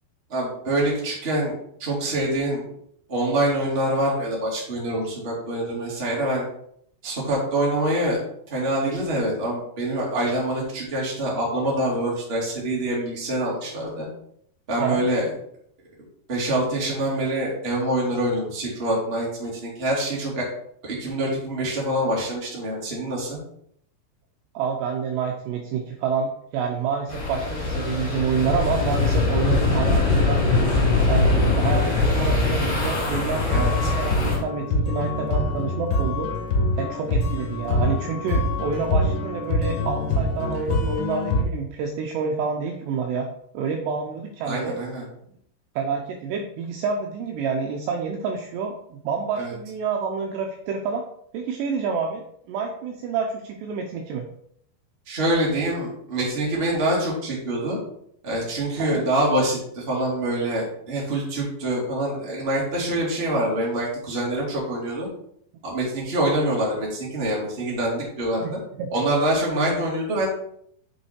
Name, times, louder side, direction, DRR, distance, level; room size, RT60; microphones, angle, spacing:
voice 1, 0.3-1.5 1.8-2.6 3.1-6.4 7.0-8.2 8.5-14.1 14.7-15.3 16.3-20.5 20.8-23.4 33.5-33.9 44.4-45.0 49.4-49.5 55.1-57.8 58.2-65.1 65.6-68.4 68.9-70.3, right 1 dB, 20° right, -4 dB, 1.8 m, -25 dB
voice 2, 24.5-30.4 31.1-36.3 36.8-43.3 43.5-44.7 45.8-51.0 51.3-54.3 58.8-59.0 68.4-68.9, right 5 dB, 80° right, 2 dB, 2.6 m, -28 dB
sound 1, 27.1-34.4, left 3 dB, 45° left, 4.2 m, -22 dB
sound 2, 33.2-41.4, left 2 dB, 75° left, 3.4 m, -25 dB
7.2 x 6.0 x 4.5 m, 0.68 s
omnidirectional pair, 5.6 m